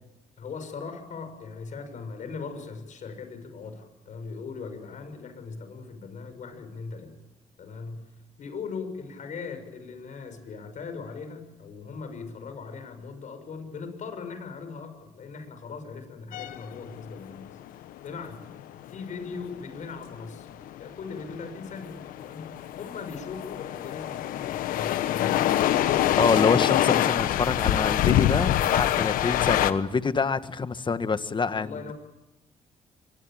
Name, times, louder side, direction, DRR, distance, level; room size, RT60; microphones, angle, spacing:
voice 1, 0.4-7.1 7.6-8.1 8.4-17.6 18.0-18.5 18.9-20.5 20.8-22.5 22.8-26.6 30.3-30.4 31.5-31.9, left 5 dB, 60° left, 9 dB, 6.3 m, -39 dB
sound 1, 16.3-29.7, left 12 dB, 85° left, 1.2 m, -25 dB
voice 2, 26.2-31.9, left 5 dB, 35° left, 11 dB, 1.6 m, -26 dB
25.0 x 22.0 x 9.0 m, 0.94 s
cardioid pair, 75°, 14 cm